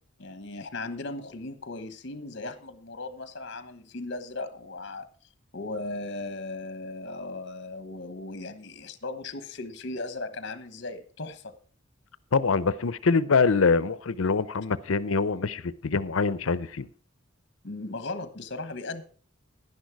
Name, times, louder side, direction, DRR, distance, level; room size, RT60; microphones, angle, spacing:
voice 1, 0.2-5.1 5.5-11.5 17.6-19.0, left 2 dB, 60° left, 1.2 m, -37 dB
voice 2, 12.3-16.9, left 4 dB, 90° left, 0.7 m, -24 dB
11.0 x 10.5 x 4.7 m
head